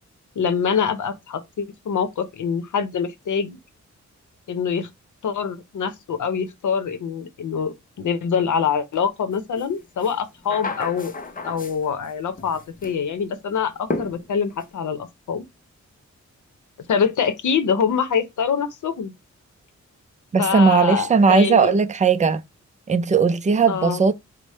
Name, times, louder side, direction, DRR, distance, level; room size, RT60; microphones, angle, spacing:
voice 1, 0.4-3.6 4.5-4.9 5.2-11.1 11.4-15.4 16.9-19.1 20.4-21.7 23.7-24.0, left 6 dB, 85° left, 0.8 m, -24 dB
sound 1, 9.6-9.7 10.0-12.1 12.4-13.0 13.9-14.7, left 3 dB, 30° left, 0.6 m, -32 dB
voice 2, 20.3-22.4 22.9-24.1, right 5 dB, 25° right, 0.4 m, -17 dB
4.8 x 2.1 x 4.1 m
wide cardioid pair, 125°, 30 cm